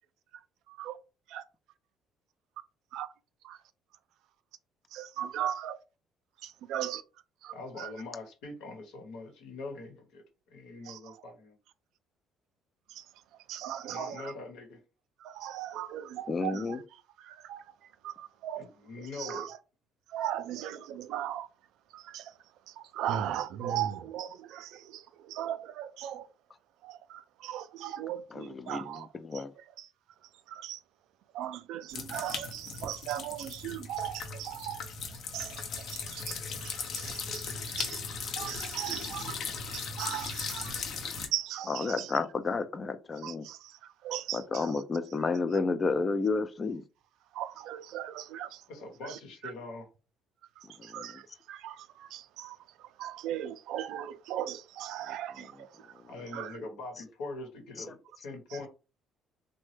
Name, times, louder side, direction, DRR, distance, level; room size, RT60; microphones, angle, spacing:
voice 1, 0.7-1.0 1.3-1.4 2.9-3.1 3.4-3.6 4.9-5.8 6.4-7.0 7.4-7.9 10.8-11.2 12.9-13.1 13.5-14.3 15.2-17.7 18.0-18.7 19.0-19.6 20.1-21.5 21.9-22.3 22.7-26.3 26.8-29.1 29.3-29.9 30.5-30.8 31.3-34.8 35.3-38.0 38.4-39.4 39.7-40.8 41.1-42.2 43.1-44.8 47.3-48.6 49.0-49.5 50.6-56.0 56.3-56.6 58.5-58.6, right 11 dB, 80° right, 0.3 m, -38 dB
voice 2, 7.5-10.2 10.5-11.5 13.8-14.8 18.6-19.5 48.7-49.9 56.1-58.0 58.2-58.7, left 3 dB, 85° left, 1.0 m, -42 dB
voice 3, 16.3-16.8 28.3-28.9 29.3-29.5 41.7-43.5 44.3-46.8 50.8-51.1, left 4 dB, 30° left, 0.3 m, -31 dB
sound 1, 31.9-41.3, left 5 dB, 65° left, 0.7 m, -38 dB
3.0 x 2.1 x 3.2 m
cardioid pair, 95°, 0 cm